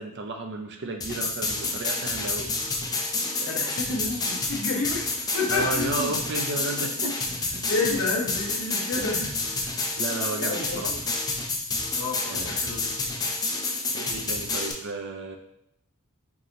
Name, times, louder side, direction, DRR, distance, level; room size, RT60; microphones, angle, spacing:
voice 1, 0.0-2.5 3.4-3.5 5.5-7.9 9.0-9.1 9.6-11.0 12.3-12.7 13.9-15.4, right 2 dB, 55° right, 4 dB, 0.5 m, -33 dB
sound 1, 1.0-14.7, left 3 dB, 15° left, 0.4 m, -29 dB
voice 2, 3.1-6.1 7.7-9.3 10.4-10.9 11.9-12.9, left 3 dB, 65° left, -2 dB, 1.0 m, -30 dB
4.7 x 2.8 x 2.6 m, 0.77 s
head